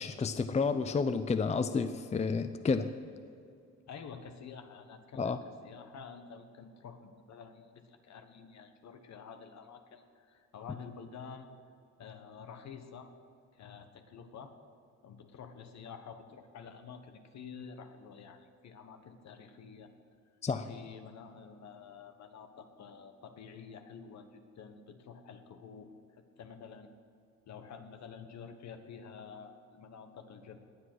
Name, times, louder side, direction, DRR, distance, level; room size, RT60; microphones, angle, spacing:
voice 1, 0.0-2.9 5.2-5.4 20.4-20.7, left 4 dB, 20° left, 10 dB, 0.5 m, -30 dB
voice 2, 3.9-11.5 12.0-13.1 13.5-14.5 15.0-19.9 20.7-25.9 26.4-26.9 27.5-30.6, left 6 dB, 65° left, 7 dB, 1.4 m, -49 dB
19.5 x 7.9 x 6.2 m, 2.5 s
cardioid pair, 90°, 30 cm